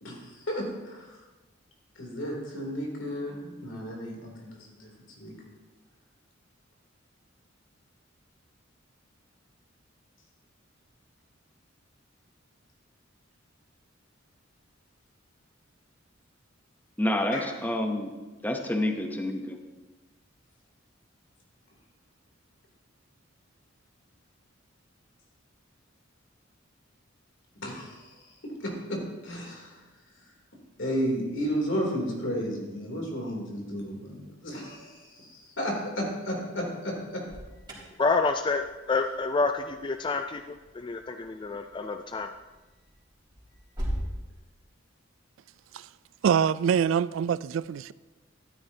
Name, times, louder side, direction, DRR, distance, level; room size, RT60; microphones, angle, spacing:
voice 1, 0.0-1.1 2.0-4.9 5.2-5.3 17.3-17.4 27.6-28.1 28.6-29.8 30.8-37.2, equal, 80° left, 3.1 m, -33 dB
voice 2, 17.0-18.1 18.4-19.6, left 1 dB, 10° left, 0.8 m, -28 dB
Alarm, 37.2-44.1, equal, 25° right, 3.8 m, -41 dB
voice 3, 38.0-40.4 40.8-42.3, left 3 dB, 25° left, 0.3 m, -28 dB
voice 4, 46.2-47.9, right 7 dB, 75° right, 0.3 m, -25 dB
13.5 x 12.0 x 2.8 m
head